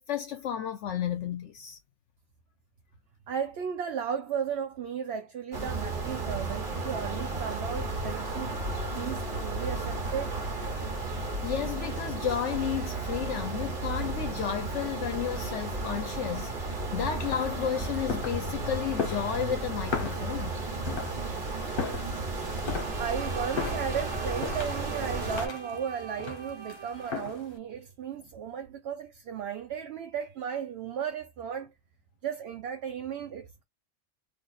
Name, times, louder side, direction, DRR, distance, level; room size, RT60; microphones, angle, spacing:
voice 1, 0.0-1.8 11.4-20.5, left 9 dB, 75° left, 0.9 m, -32 dB
voice 2, 3.3-8.6 8.9-10.3 23.0-31.7 32.2-33.6, right 8 dB, 65° right, 0.8 m, -35 dB
sound 1, 5.5-25.5, right 3 dB, 45° right, 1.4 m, -33 dB
sound 2, 16.9-27.6, left 5 dB, 50° left, 1.0 m, -38 dB
Bowed string instrument, 22.6-27.3, right 6 dB, 25° right, 0.9 m, -43 dB
3.9 x 2.6 x 2.3 m
omnidirectional pair, 1.3 m